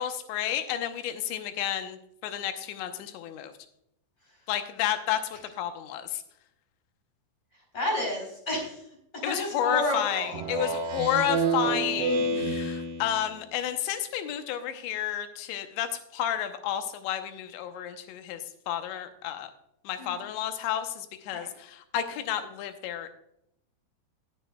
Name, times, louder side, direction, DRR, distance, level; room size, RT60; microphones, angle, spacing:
voice 1, 0.0-3.5 4.5-6.2 9.2-18.4 18.7-19.5 19.8-23.1, left 10 dB, 90° left, 8 dB, 3.1 m, -31 dB
voice 2, 7.7-8.8 9.1-10.4 20.0-20.2 21.3-21.5, left 1 dB, 15° left, -1 dB, 3.4 m, -31 dB
Speech synthesizer, 10.3-13.4, right 3 dB, 85° right, 1.3 m, -29 dB
18.0 x 8.7 x 2.2 m, 0.77 s
omnidirectional pair, 5.0 m